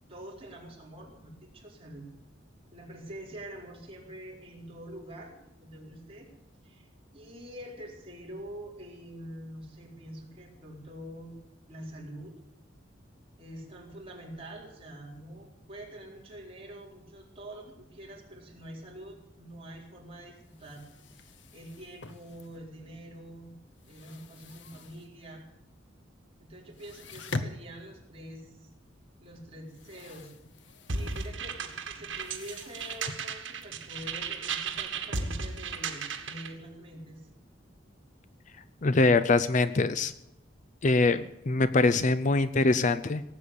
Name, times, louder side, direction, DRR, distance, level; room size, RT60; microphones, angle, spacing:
voice 1, 0.1-2.1 2.7-6.3 6.6-6.9 7.1-11.3 11.7-12.4 13.4-20.8 21.1-23.5 23.9-25.4 26.4-28.7 29.2-30.3 30.9-37.2, right 1 dB, 30° right, -2 dB, 4.2 m, -45 dB
sound 1, 20.4-23.0 23.3-25.4 25.7-25.8 26.2-26.3 26.6-34.9, left 2 dB, 70° left, 1.0 m, -44 dB
sound 2, 30.9-36.5, right 5 dB, 80° right, 1.8 m, -35 dB
voice 2, 38.8-40.1 40.8-43.2, left 3 dB, 40° left, 12 dB, 0.5 m, -23 dB
18.0 x 8.5 x 8.3 m, 0.89 s
head